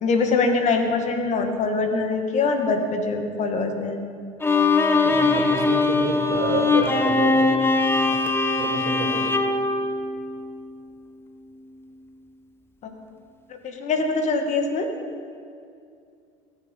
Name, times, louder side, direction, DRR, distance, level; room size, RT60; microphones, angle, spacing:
voice 1, 0.0-4.0 13.6-14.9, left 3 dB, 50° left, 5 dB, 2.2 m, -23 dB
Bowed string instrument, 4.4-10.7, left 3 dB, 15° left, 1.3 m, -21 dB
voice 2, 5.0-7.5 8.0-8.2 8.6-9.4, right 4 dB, 55° right, 2 dB, 3.1 m, -29 dB
22.5 x 9.1 x 5.7 m, 2.3 s
supercardioid pair, 85°, 16 cm